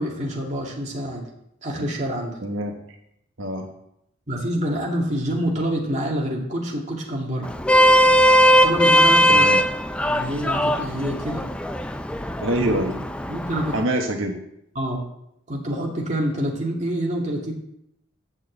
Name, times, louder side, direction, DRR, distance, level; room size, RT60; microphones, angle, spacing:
voice 1, 0.0-1.3 1.6-2.4 4.3-7.5 8.6-9.4 10.1-11.4 13.3-13.7 14.8-15.0 15.5-17.5, equal, 35° right, -1 dB, 2.3 m, -26 dB
voice 2, 2.4-2.7 3.4-3.7 9.3-9.6 12.4-13.0 13.7-14.4, right 1 dB, 85° right, 2 dB, 1.3 m, -24 dB
Vehicle horn car horn honking, 7.4-13.8, equal, 5° left, 0.4 m, -19 dB
8.8 x 6.3 x 8.0 m, 0.77 s
head